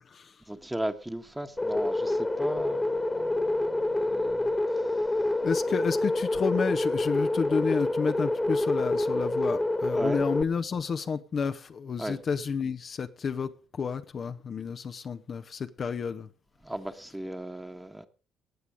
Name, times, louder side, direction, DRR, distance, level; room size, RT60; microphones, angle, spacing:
voice 1, 0.5-4.8 9.9-10.2 12.0-12.2 16.6-18.1, right 1 dB, 10° right, 1.4 m, -37 dB
sound 1, 1.6-10.4, left 2 dB, 15° left, 1.5 m, -27 dB
voice 2, 5.4-13.5 13.8-16.3, left 6 dB, 45° left, 0.8 m, -30 dB
17.5 x 8.3 x 5.0 m
hypercardioid pair, 50°, 0 cm